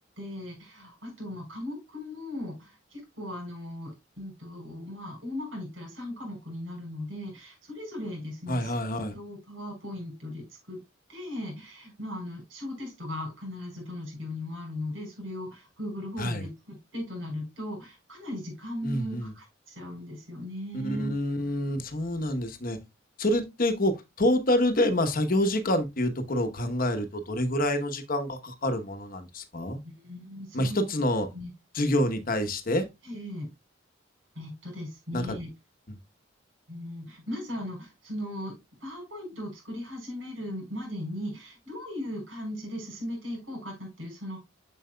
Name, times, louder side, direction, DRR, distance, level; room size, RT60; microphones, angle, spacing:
voice 1, 0.2-10.8 11.1-21.1 29.8-30.9 31.3-31.5 33.0-33.5 34.3-35.5 36.7-38.6 38.8-44.4, left 1 dB, 80° right, 4.7 m, -38 dB
voice 2, 8.5-9.1 16.2-16.4 18.8-19.3 20.8-22.8 23.2-29.8 30.5-31.3 31.7-32.9 35.1-35.4 35.9-36.0, left 1 dB, 50° left, 1.0 m, -27 dB
7.5 x 6.1 x 2.2 m
head